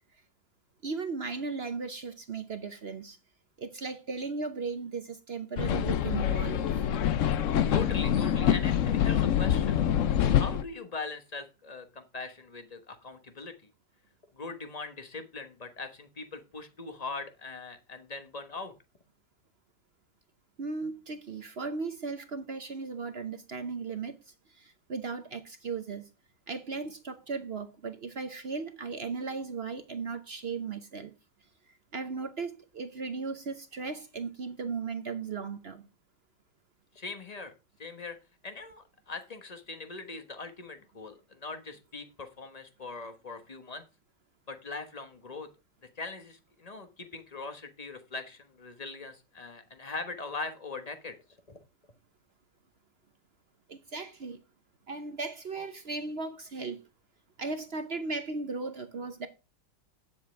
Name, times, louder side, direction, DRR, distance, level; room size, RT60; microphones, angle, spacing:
voice 1, 0.8-3.2 3.6-6.8 20.6-24.2 24.5-26.0 26.5-31.1 31.9-35.9 53.7-54.4 54.9-56.8 57.4-59.3, right 4 dB, 50° right, 0.8 m, -36 dB
sound 1, 5.6-10.6, left 9 dB, 60° left, 0.8 m, -26 dB
voice 2, 7.7-13.5 14.3-18.7 36.9-37.5 37.8-38.2 38.4-43.8 44.5-45.5 46.0-51.1 51.5-51.6, left 3 dB, 25° left, 1.2 m, -41 dB
9.4 x 7.7 x 4.6 m
omnidirectional pair, 1.9 m